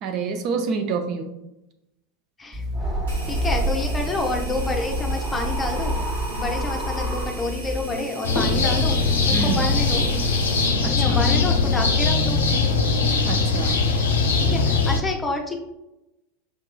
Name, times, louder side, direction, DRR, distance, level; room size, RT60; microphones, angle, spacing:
voice 1, 0.0-1.3 9.3-9.6 10.8-11.2 13.3-13.8, right 5 dB, 45° right, 6 dB, 0.4 m, -27 dB
sound 1, 2.5-7.9, equal, 25° right, 1.2 m, -27 dB
sound 2, 3.1-10.8, right 2 dB, 70° right, 1.5 m, -38 dB
voice 2, 3.3-6.0 6.3-9.0 9.3-10.0 10.9-12.4 14.4-15.6, left 2 dB, 15° left, 2 dB, 0.7 m, -28 dB
sound 3, 8.2-15.0, left 4 dB, 75° left, 0.5 m, -21 dB
5.6 x 2.9 x 2.2 m, 0.92 s
figure-of-eight pair, 85°, 0 cm